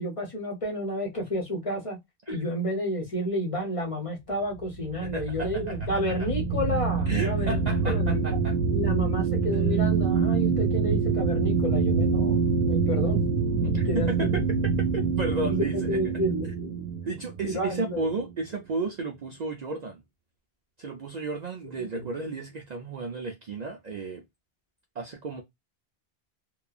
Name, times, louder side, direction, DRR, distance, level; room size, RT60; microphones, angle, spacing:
voice 1, 0.0-2.0 2.3-8.2 8.7-14.4 15.4-16.8 17.4-18.1 21.8-22.1, equal, 35° left, 0.9 m, -31 dB
sound 1, 4.6-18.3, right 5 dB, 80° right, 0.8 m, -26 dB
voice 2, 5.0-6.3 7.1-8.6 13.6-16.0 16.4-16.5 17.1-20.0 20.8-24.2 25.0-25.4, right 3 dB, 55° right, 0.5 m, -33 dB
2.8 x 2.2 x 2.3 m
omnidirectional pair, 1.0 m